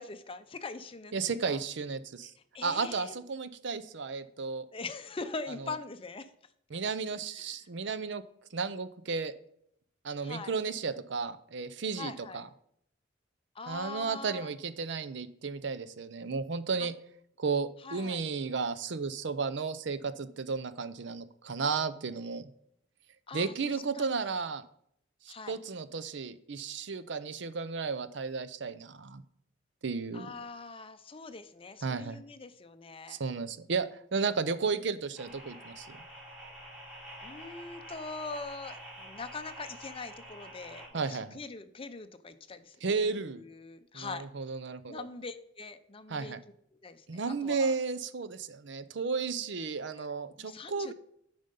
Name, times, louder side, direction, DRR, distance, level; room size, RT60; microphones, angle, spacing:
voice 1, 0.0-1.1 1.4-1.6 2.5-3.2 4.7-6.3 7.4-7.5 10.2-10.5 11.9-12.4 13.5-14.5 16.8-16.9 17.8-18.2 23.3-24.4 25.3-25.6 30.1-33.2 37.2-44.3 44.9-46.4 46.7-47.7 50.0-50.1 50.4-50.9, left 4 dB, 30° left, 9 dB, 0.6 m, -43 dB
voice 2, 1.1-2.3 2.6-4.7 6.7-8.2 8.5-9.3 10.0-12.5 13.7-16.9 17.4-22.5 23.3-24.6 25.2-29.2 29.8-30.3 31.8-32.2 33.1-36.0 40.9-41.4 42.8-43.4 43.9-45.0 46.1-46.4 47.1-50.9, right 4 dB, 65° right, 14 dB, 0.6 m, -33 dB
sound 1, 35.2-40.9, equal, 5° right, 3.8 m, -47 dB
9.0 x 5.3 x 5.3 m, 0.70 s
head